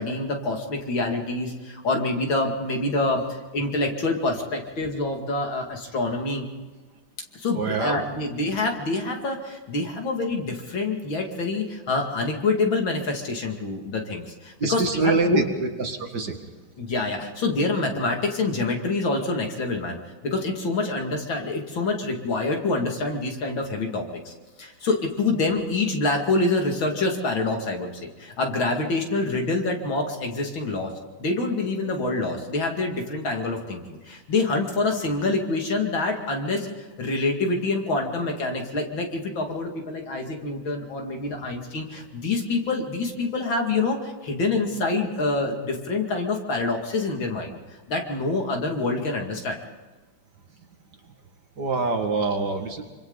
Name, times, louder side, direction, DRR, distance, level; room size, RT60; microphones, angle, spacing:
voice 1, 0.0-6.4 7.3-15.4 16.8-24.3 24.6-30.9 31.2-47.6 47.9-49.6, left 3 dB, 70° left, 2 dB, 3.2 m, -26 dB
voice 2, 7.5-8.0 14.6-16.4 51.6-52.8, right 4 dB, 55° right, 3 dB, 2.5 m, -25 dB
26.0 x 25.5 x 4.0 m, 1.3 s
omnidirectional pair, 2.2 m